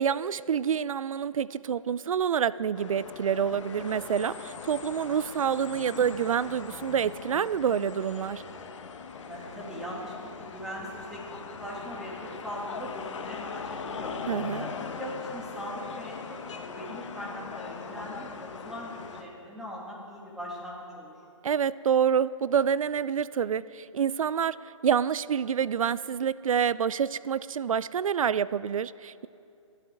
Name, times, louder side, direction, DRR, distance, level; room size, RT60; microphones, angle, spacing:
voice 1, 0.0-8.4 14.3-14.6 21.4-29.3, right 8 dB, 85° right, 18 dB, 0.4 m, -27 dB
sound 1, 2.7-19.2, left 5 dB, 65° left, 1.2 m, -40 dB
voice 2, 9.3-11.2 11.6-14.2 14.6-21.1, equal, 5° right, -4 dB, 2.3 m, -40 dB
25.0 x 11.5 x 3.5 m, 2.7 s
hypercardioid pair, 145°, 17 cm